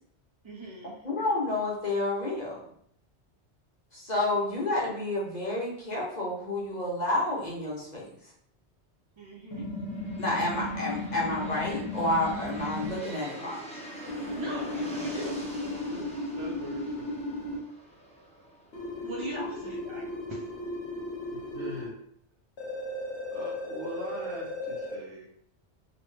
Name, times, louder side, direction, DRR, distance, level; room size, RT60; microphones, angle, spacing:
voice 1, 0.4-1.0 9.2-9.7 14.3-15.4 19.0-20.5, right 2 dB, 50° right, -2 dB, 0.3 m, -40 dB
voice 2, 1.0-2.6 3.9-8.1 10.2-13.7 19.4-19.5, left 2 dB, 40° left, -5 dB, 1.0 m, -30 dB
sound 1, 9.5-13.0 14.1-17.6 18.7-21.9 22.6-25.0, left 1 dB, 70° left, 1.1 m, -36 dB
sound 2, 9.8-19.6, right 1 dB, 10° left, 0.5 m, -45 dB
voice 3, 15.6-16.1 16.3-17.1 21.3-21.9 23.3-25.3, right 1 dB, 75° right, -3 dB, 1.3 m, -41 dB
3.0 x 2.9 x 3.2 m, 0.66 s
omnidirectional pair, 1.2 m